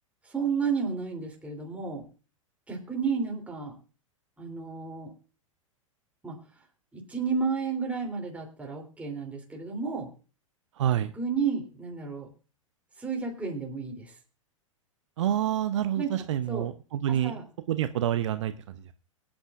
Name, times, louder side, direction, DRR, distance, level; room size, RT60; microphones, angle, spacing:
voice 1, 0.2-2.1 2.7-3.8 4.4-5.1 6.2-6.4 6.9-10.1 11.1-12.3 13.0-14.2 16.0-16.7 17.1-17.5, right 5 dB, 10° right, 0 dB, 3.1 m, -32 dB
voice 2, 10.8-11.1 15.2-17.4 17.7-18.7, right 11 dB, 60° right, 11 dB, 0.8 m, -27 dB
24.0 x 8.8 x 2.5 m, 0.36 s
figure-of-eight pair, 100°, 17 cm